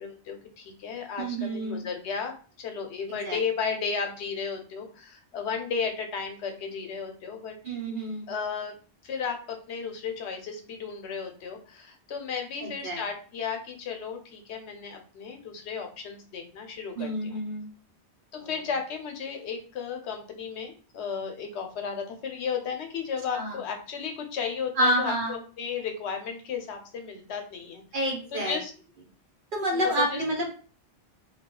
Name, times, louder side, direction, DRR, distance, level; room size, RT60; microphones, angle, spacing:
voice 1, 0.0-7.6 8.3-8.8 9.0-17.4 18.3-27.8 28.3-28.7 29.7-30.2, left 6 dB, 85° left, 4 dB, 0.9 m, -34 dB
voice 2, 1.2-1.8 3.2-3.4 7.6-8.3 12.6-13.0 16.9-17.7 18.4-18.5 23.3-23.6 24.8-25.4 27.9-28.6 29.5-30.5, right 1 dB, 55° right, -1 dB, 1.0 m, -28 dB
2.3 x 2.3 x 3.6 m, 0.39 s
omnidirectional pair, 1.1 m